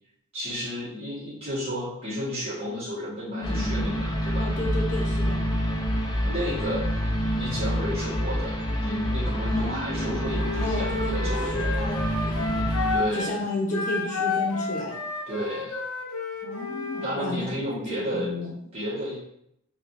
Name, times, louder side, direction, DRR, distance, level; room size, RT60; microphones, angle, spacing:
voice 1, 0.3-4.5 6.2-6.9 7.3-8.5 8.8-11.5 12.9-13.3 15.3-15.8 17.0-18.3 18.7-19.2, equal, 30° right, -10 dB, 1.5 m, -32 dB
voice 2, 3.4-3.9 4.4-5.4 9.5-10.2 10.6-12.0 12.2-12.7 13.1-14.9 16.4-18.5, left 1 dB, 35° left, -3 dB, 0.9 m, -32 dB
sound 1, 3.4-13.0, equal, 20° left, 0.4 m, -27 dB
Wind instrument woodwind instrument, 10.3-13.3 13.7-17.1, left 4 dB, 85° left, 0.6 m, -31 dB
3.7 x 2.5 x 2.6 m, 0.75 s
head